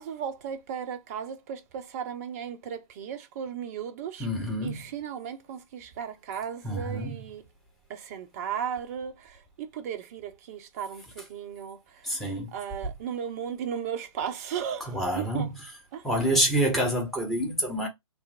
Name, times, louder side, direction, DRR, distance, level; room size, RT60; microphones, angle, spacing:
voice 1, 0.0-4.3 4.6-7.4 7.9-9.4 9.7-11.8 12.2-15.5 15.9-16.0, right 8 dB, 30° right, 0.6 m, -36 dB
voice 2, 4.2-4.8 6.6-7.2 12.0-12.5 14.8-15.5 16.0-17.9, equal, ahead, 1.2 m, -27 dB
3.3 x 2.5 x 4.3 m
figure-of-eight pair, 125°, 17 cm